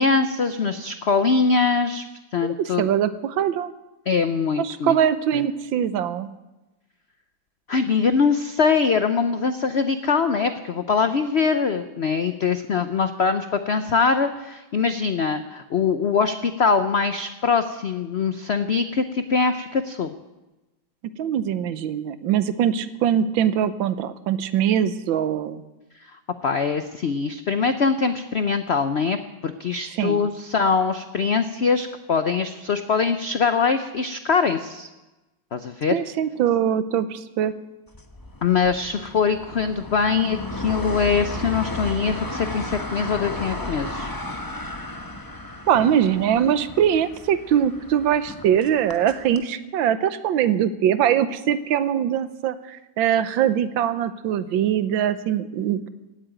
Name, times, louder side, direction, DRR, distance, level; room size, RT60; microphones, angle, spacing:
voice 1, 0.0-2.0 2.3-2.9 4.1-5.0 5.3-5.4 7.7-20.1 26.1-34.9 35.5-35.9 38.4-44.1, left 5 dB, 85° left, 9 dB, 0.5 m, -23 dB
voice 2, 2.6-3.7 4.6-6.3 21.0-25.6 30.0-30.3 35.9-37.5 45.7-55.9, right 9 dB, 80° right, 13 dB, 1.5 m, -22 dB
sound 1, 37.9-49.4, left 1 dB, 15° left, 0.7 m, -34 dB
17.0 x 8.9 x 9.1 m, 1.1 s
omnidirectional pair, 2.1 m